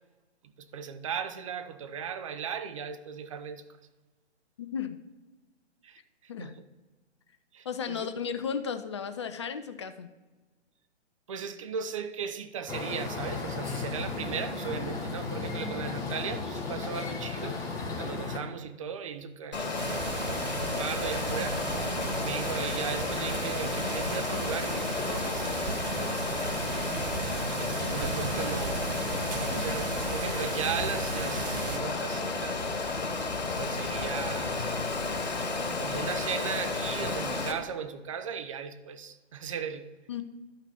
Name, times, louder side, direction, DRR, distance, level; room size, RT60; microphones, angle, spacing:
voice 1, 0.6-3.7 5.8-6.0 6.4-6.6 7.5-8.1 11.3-17.6 18.0-20.1 20.6-21.6 22.2-25.9 27.6-28.8 29.2-32.6 33.6-34.7 35.8-39.9, right 7 dB, 30° right, 0.5 m, -37 dB
voice 2, 4.6-5.0 6.3-6.6 7.6-10.1 40.1-40.2, left 7 dB, 25° left, 0.4 m, -34 dB
sound 1, 12.7-18.4, left 4 dB, 10° left, 1.1 m, -35 dB
Water, 19.5-37.5, left 3 dB, 65° left, 2.3 m, -32 dB
sound 2, 19.7-31.8, right 5 dB, 50° right, 0.9 m, -36 dB
12.0 x 5.8 x 4.3 m
figure-of-eight pair, 130°, 35 cm